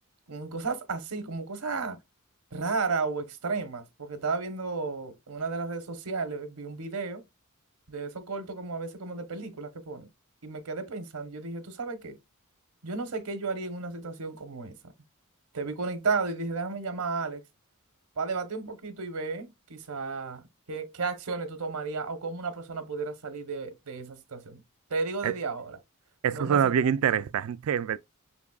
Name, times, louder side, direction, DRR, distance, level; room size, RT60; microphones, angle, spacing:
voice 1, 0.3-2.0 2.5-7.2 7.9-10.1 10.4-12.2 12.8-14.8 15.5-17.4 18.2-24.6 24.9-25.8 26.3-26.7, right 4 dB, 85° right, 1.0 m, -33 dB
voice 2, 26.2-28.0, right 8 dB, 65° right, 0.3 m, -25 dB
5.9 x 3.5 x 2.3 m
head